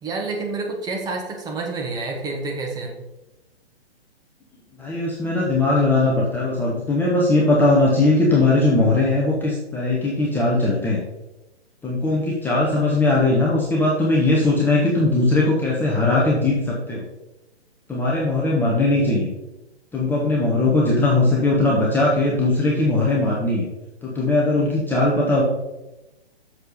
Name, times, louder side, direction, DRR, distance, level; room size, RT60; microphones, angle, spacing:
voice 1, 0.0-3.0, right 3 dB, 10° right, 0 dB, 1.4 m, -28 dB
voice 2, 4.8-11.0 11.8-17.0 17.9-19.3 19.9-23.7 24.0-25.4, left 2 dB, 5° left, -4 dB, 1.0 m, -19 dB
7.8 x 6.8 x 5.4 m, 0.98 s
figure-of-eight pair, 135°, 32 cm